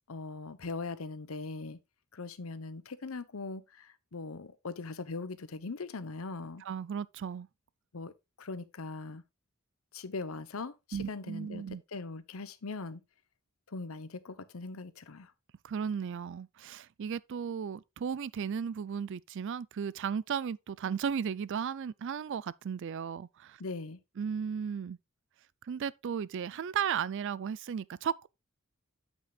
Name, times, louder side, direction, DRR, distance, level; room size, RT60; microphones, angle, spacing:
voice 1, 0.1-1.8 2.1-6.6 7.9-8.1 8.4-9.2 9.9-11.6 11.9-13.0 13.7-15.3 23.6-24.0, left 3 dB, 75° left, 0.9 m, -40 dB
voice 2, 6.6-7.5 10.9-11.8 15.6-23.6 24.2-25.0 25.6-28.3, right 7 dB, 60° right, 0.4 m, -35 dB
8.6 x 8.2 x 2.3 m
head